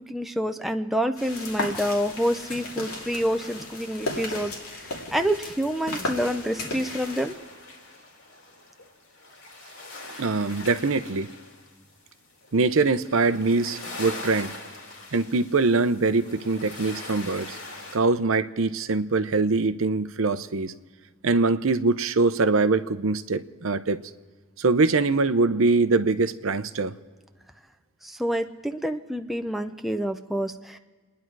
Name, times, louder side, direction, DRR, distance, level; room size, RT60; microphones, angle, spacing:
voice 1, 0.0-4.5 5.1-7.3 28.0-30.8, equal, ahead, 5 dB, 0.6 m, -27 dB
sound 1, 1.2-7.3, left 2 dB, 85° left, 2.8 m, -35 dB
sound 2, 1.8-18.0, left 2 dB, 65° left, 3.1 m, -43 dB
voice 2, 10.1-11.3 12.5-14.5 15.1-17.6 17.9-20.7 21.2-24.0 24.6-26.9, right 3 dB, 70° right, 11 dB, 0.7 m, -23 dB
29.5 x 10.5 x 4.7 m, 1.5 s
head